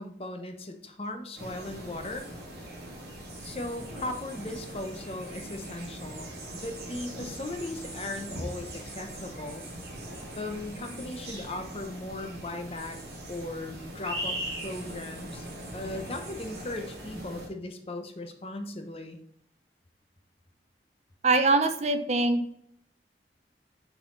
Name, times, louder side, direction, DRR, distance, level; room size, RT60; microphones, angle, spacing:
voice 1, 0.0-2.3 3.4-9.6 10.4-13.0 13.3-15.5 15.7-19.2, left 2 dB, 35° left, 6 dB, 0.7 m, -38 dB
sound 1, 1.4-17.5, right 1 dB, 65° right, 2.5 m, -40 dB
voice 2, 21.2-22.6, right 3 dB, 40° right, 8 dB, 0.5 m, -23 dB
7.1 x 4.0 x 3.8 m, 0.71 s
head